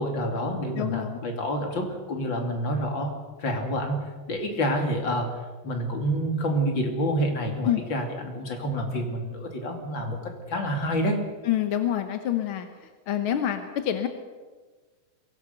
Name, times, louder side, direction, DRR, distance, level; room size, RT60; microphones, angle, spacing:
voice 1, 0.0-3.1 3.4-5.4 5.6-11.2, equal, 40° left, 3 dB, 3.2 m, -28 dB
voice 2, 0.8-1.2 7.6-7.8 11.4-12.7 13.1-14.1, left 11 dB, 60° left, 7 dB, 1.4 m, -26 dB
22.5 x 17.0 x 6.8 m, 1.4 s
omnidirectional pair, 3.5 m